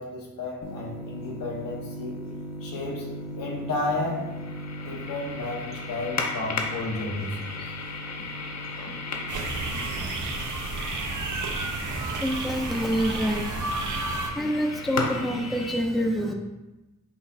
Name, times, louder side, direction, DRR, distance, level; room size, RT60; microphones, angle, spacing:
voice 1, 0.0-2.2 2.6-4.3 4.8-7.8 10.2-10.3, left 2 dB, 80° left, -1 dB, 1.0 m, -32 dB
sound 1, 0.6-15.7, left 2 dB, 50° left, 0.7 m, -35 dB
sound 2, 9.3-14.3, right 3 dB, 60° right, 0.7 m, -31 dB
voice 2, 11.7-16.3, equal, ahead, 2 dB, 0.5 m, -28 dB
5.6 x 2.4 x 3.3 m, 1.0 s
cardioid pair, 70°, 34 cm